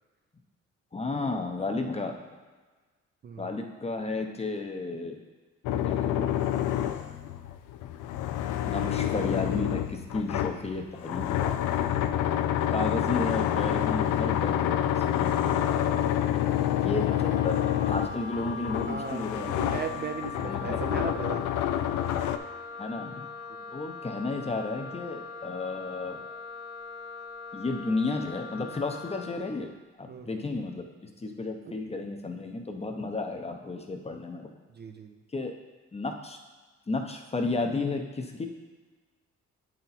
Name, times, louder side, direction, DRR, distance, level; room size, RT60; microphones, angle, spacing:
voice 1, 0.9-2.2 3.4-5.2 5.9-6.3 8.7-11.6 12.7-15.6 16.7-19.7 20.4-21.0 22.8-23.3 23.7-26.2 27.5-29.7 30.0-30.9 31.2-34.5 35.3-35.5 35.9-36.4 36.9-38.5, left 3 dB, 20° left, 4 dB, 0.8 m, -33 dB
voice 2, 3.2-3.5 18.9-21.8 30.1-30.5 31.7-31.8 34.7-35.2, right 6 dB, 35° right, 6 dB, 0.5 m, -37 dB
sound 1, 5.6-22.4, left 11 dB, 90° left, 0.5 m, -28 dB
Wind instrument woodwind instrument, 16.9-29.4, left 5 dB, 50° left, 1.2 m, -41 dB
8.5 x 4.3 x 4.0 m, 1.3 s
cardioid pair, 90°, 30 cm